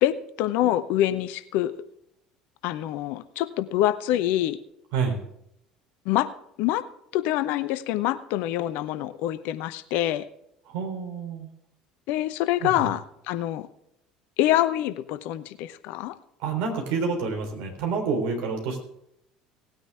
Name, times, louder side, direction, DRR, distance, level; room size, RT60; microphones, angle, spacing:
voice 1, 0.0-1.7 2.6-4.6 6.1-6.3 6.6-6.8 7.1-10.2 12.1-13.7 14.4-16.2, left 13 dB, 60° left, 13 dB, 0.8 m, -25 dB
voice 2, 10.7-11.5 12.6-12.9 16.4-18.8, right 5 dB, 60° right, 3 dB, 3.6 m, -28 dB
18.5 x 9.2 x 3.5 m, 0.76 s
figure-of-eight pair, 65°, 3 cm